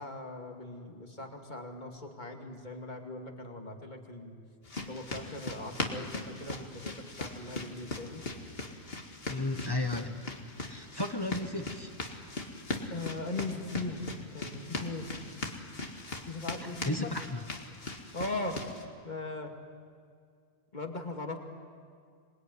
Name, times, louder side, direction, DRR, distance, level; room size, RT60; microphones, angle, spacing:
voice 1, 0.0-4.4 4.8-8.2 12.9-15.1 16.3-17.1 18.1-18.6 19.0-19.5 20.7-21.4, left 2 dB, 45° left, 3 dB, 2.4 m, -39 dB
sound 1, 4.6-18.8, left 2 dB, 65° left, 2.3 m, -40 dB
voice 2, 9.3-10.2 10.7-11.9 16.6-17.4, left 2 dB, 25° left, 6 dB, 1.2 m, -34 dB
26.5 x 21.0 x 9.5 m, 2.2 s
omnidirectional pair, 1.1 m